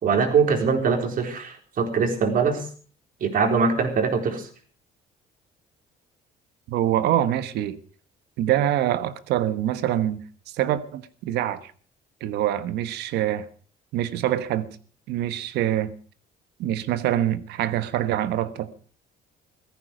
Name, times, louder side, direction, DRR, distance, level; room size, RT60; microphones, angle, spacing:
voice 1, 0.0-2.7 3.2-4.5, right 5 dB, 55° right, 4.0 m, -22 dB
voice 2, 6.7-7.8 8.4-10.2 10.5-11.7 12.2-13.5 13.9-14.7 15.1-15.9 16.6-18.7, right 12 dB, 85° right, 1.3 m, -25 dB
16.5 x 14.5 x 5.2 m
cardioid pair, 110°, 17 cm